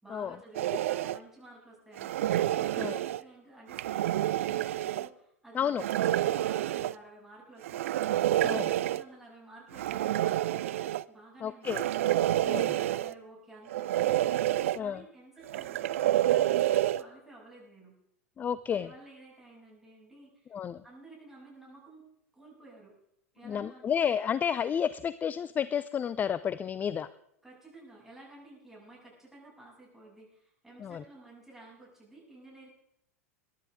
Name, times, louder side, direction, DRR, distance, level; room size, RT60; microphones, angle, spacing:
voice 1, 0.0-8.1 8.5-11.9 12.4-14.2 14.8-18.0 18.7-22.0 22.3-22.9 23.3-24.0 27.4-32.7, right 2 dB, 5° right, -4 dB, 7.7 m, -53 dB
sound 1, 0.5-1.2 2.0-3.2 3.7-5.1 5.8-6.9 7.6-9.0 9.7-11.0 11.6-13.1 13.7-14.8 15.5-17.0, right 13 dB, 60° right, 0.4 m, -28 dB
voice 2, 11.4-11.8 12.4-12.7 14.7-15.0 18.4-18.9 20.5-20.8 23.4-27.1 30.8-31.0, left 8 dB, 20° left, 16 dB, 0.4 m, -31 dB
22.0 x 12.0 x 3.7 m, 0.75 s
figure-of-eight pair, 90°, 8 cm